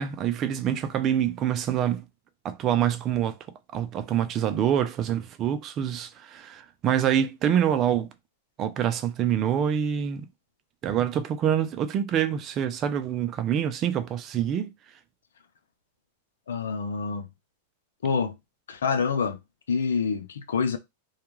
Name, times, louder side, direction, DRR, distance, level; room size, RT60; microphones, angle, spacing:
voice 1, 0.0-2.0 2.4-3.4 3.7-8.1 8.6-10.3 10.8-14.7, right 9 dB, 35° right, 0.4 m, -26 dB
voice 2, 16.5-17.3 18.0-18.3 18.7-19.4 19.7-20.8, left 5 dB, 85° left, 0.5 m, -26 dB
2.3 x 2.2 x 3.0 m
hypercardioid pair, 125°, 0 cm